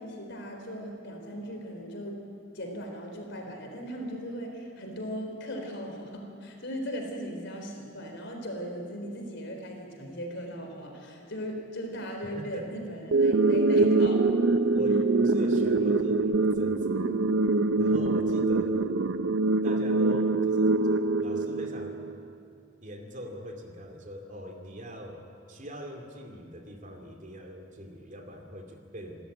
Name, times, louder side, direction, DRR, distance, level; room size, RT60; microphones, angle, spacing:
voice 1, 0.0-2.2 2.5-14.4 16.9-17.3, equal, 65° left, 3 dB, 4.1 m, -38 dB
voice 2, 12.3-12.7 14.7-17.0 17.8-18.9 19.6-22.1 22.8-29.2, equal, 40° right, 3 dB, 2.5 m, -42 dB
sound 1, 13.1-22.1, right 3 dB, 80° right, 0.7 m, -24 dB
27.0 x 13.5 x 9.3 m, 2.4 s
head